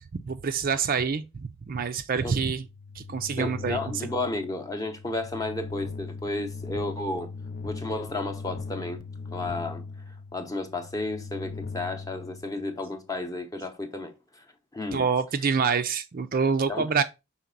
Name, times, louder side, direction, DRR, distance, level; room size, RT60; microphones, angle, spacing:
voice 1, 0.1-2.6 3.0-3.8 14.9-17.0, right 5 dB, 40° right, 0.4 m, -26 dB
sound 1, 2.4-13.0, left 4 dB, 40° left, 0.3 m, -39 dB
voice 2, 3.4-7.3 7.6-9.0 9.3-9.8 10.3-14.1 14.7-15.0 16.7-16.8, left 2 dB, 15° left, 0.8 m, -32 dB
5.9 x 4.2 x 3.8 m
head